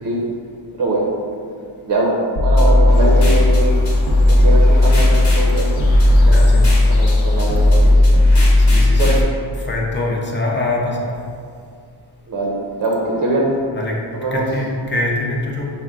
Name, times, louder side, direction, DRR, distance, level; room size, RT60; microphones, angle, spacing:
voice 1, 0.7-1.1 1.8-3.9 4.3-6.6 6.9-8.2 9.0-9.2 12.3-13.5 14.1-14.4, right 2 dB, 45° right, -3 dB, 0.6 m, -22 dB
sound 1, 2.4-9.2, left 1 dB, 60° left, 1.1 m, -13 dB
sound 2, 2.7-8.5, right 3 dB, 20° right, 0.9 m, -36 dB
Various birds in a wooden suburban village near Moscow., 2.9-7.9, equal, 80° left, 0.7 m, -31 dB
voice 2, 6.2-6.6 8.6-9.0 9.6-11.0 13.7-14.0 14.3-15.7, left 2 dB, 25° left, -2 dB, 0.6 m, -23 dB
5.4 x 2.2 x 3.6 m, 2.3 s
wide cardioid pair, 130°, 47 cm